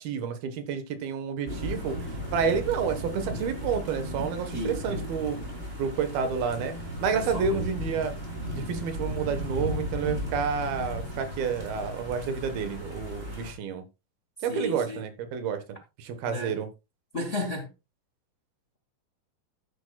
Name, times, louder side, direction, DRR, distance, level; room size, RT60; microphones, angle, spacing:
voice 1, 0.0-2.0 2.3-5.4 5.8-6.7 7.0-8.1 8.5-13.8 14.4-15.6 16.0-16.7, right 6 dB, 80° right, 3.2 m, -29 dB
sound 1, 1.5-13.5, equal, 15° right, 3.3 m, -35 dB
voice 2, 7.1-7.7 14.5-15.0 16.3-16.5 17.1-17.7, left 1 dB, 65° left, 0.7 m, -33 dB
12.5 x 10.5 x 2.3 m
omnidirectional pair, 4.3 m